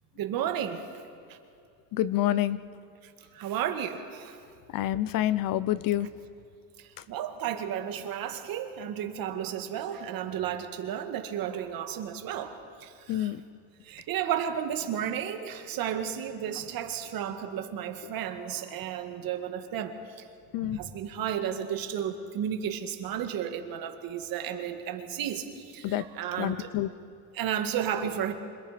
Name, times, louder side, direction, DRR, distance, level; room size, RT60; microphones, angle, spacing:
voice 1, 0.2-1.0 1.3-1.4 3.0-4.4 6.8-13.3 13.8-20.3 20.6-26.7 27.3-28.3, right 9 dB, 55° right, 6 dB, 2.0 m, -33 dB
voice 2, 1.9-2.6 4.7-6.1 13.1-13.4 20.5-20.8 25.8-26.0 26.4-26.9, left 13 dB, 50° left, 17 dB, 0.7 m, -27 dB
26.5 x 21.0 x 5.1 m, 2.6 s
cardioid pair, 125°, 42 cm